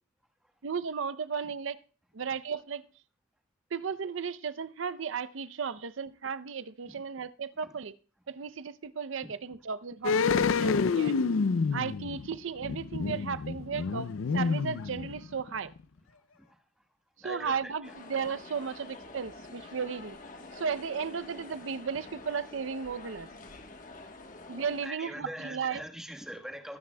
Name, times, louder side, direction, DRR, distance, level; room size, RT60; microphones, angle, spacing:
voice 1, 0.6-1.8 2.1-2.8 3.7-7.9 8.3-11.1 11.7-15.7 17.2-20.2 20.5-23.3 24.5-25.8, right 6 dB, 75° right, 0.6 m, -35 dB
sound 1, 10.0-15.5 15.8-15.9, left 5 dB, 80° left, 0.4 m, -28 dB
voice 2, 17.2-17.6 17.8-17.9 24.8-26.8, equal, ahead, 1.2 m, -42 dB
sound 2, 17.8-24.9, left 2 dB, 40° left, 1.2 m, -47 dB
21.5 x 9.5 x 2.2 m
head